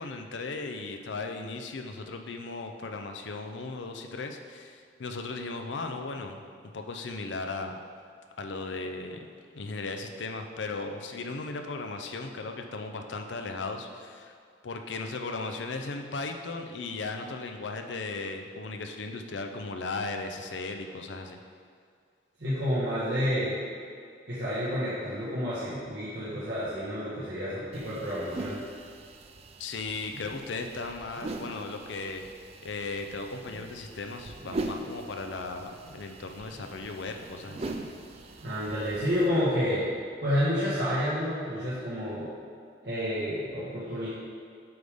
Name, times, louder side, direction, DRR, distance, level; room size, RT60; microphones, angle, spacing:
voice 1, 0.0-6.5 6.7-7.8 8.4-9.2 9.5-14.3 14.6-21.4 29.6-32.3 32.6-37.7, left 3 dB, 90° left, 5 dB, 0.6 m, -36 dB
voice 2, 22.4-23.6 24.3-28.6 38.4-39.9 40.2-42.3 42.8-44.1, equal, 65° right, -11 dB, 1.4 m, -29 dB
sound 1, 27.7-39.3, right 2 dB, 35° right, 0.4 m, -41 dB
7.9 x 3.5 x 5.0 m, 2.2 s
head